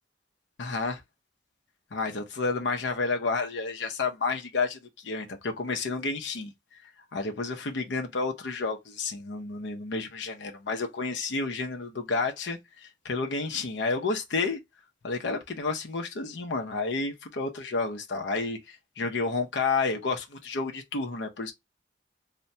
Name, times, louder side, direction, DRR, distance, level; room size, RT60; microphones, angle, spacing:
voice 1, 0.6-1.0 1.9-6.5 7.1-14.6 15.0-21.5, left 4 dB, 85° left, 0.6 m, -30 dB
3.2 x 2.1 x 2.6 m
head